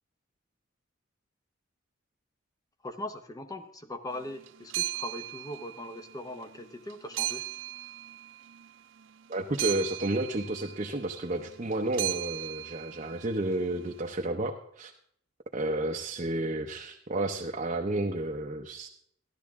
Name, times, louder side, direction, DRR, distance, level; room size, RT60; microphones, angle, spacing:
voice 1, 2.8-7.4, left 1 dB, 20° left, 8 dB, 0.8 m, -40 dB
sound 1, 4.1-14.1, right 16 dB, 65° right, 0.4 m, -38 dB
voice 2, 9.3-14.9 15.5-18.9, right 2 dB, 35° right, 2 dB, 0.7 m, -31 dB
14.0 x 11.5 x 3.6 m, 0.67 s
head